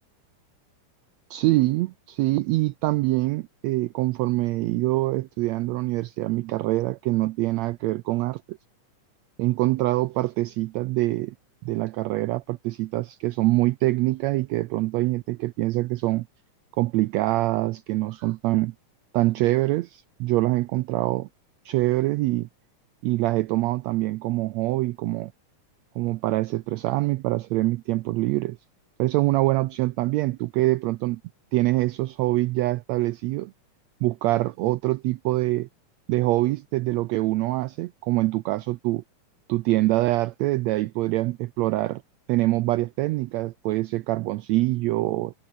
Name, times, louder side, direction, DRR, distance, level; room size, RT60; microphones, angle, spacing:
voice 1, 1.3-8.6 9.4-11.3 11.6-16.3 16.8-18.7 19.1-21.3 21.6-22.5 23.0-25.3 26.0-28.6 29.0-31.2 31.5-33.5 34.0-35.7 36.1-39.0 39.5-42.0 42.3-45.3, right 18 dB, 85° right, 1.5 m, -24 dB
omnidirectional pair, 3.7 m